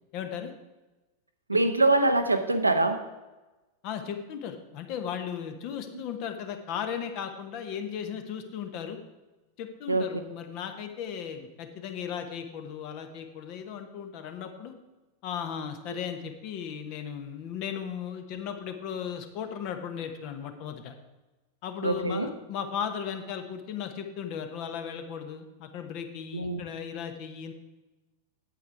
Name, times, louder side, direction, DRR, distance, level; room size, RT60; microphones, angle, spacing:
voice 1, 0.1-0.5 1.5-1.6 3.8-9.0 9.6-14.7 15.2-20.9 21.6-27.5, left 8 dB, 45° left, 7 dB, 1.1 m, -36 dB
voice 2, 1.5-3.0 5.9-6.0 9.9-10.1 15.9-16.0 21.8-22.3 26.3-26.6, right 2 dB, 85° right, 8 dB, 0.7 m, -24 dB
8.4 x 8.2 x 4.7 m, 1.1 s
figure-of-eight pair, 90°, 0 cm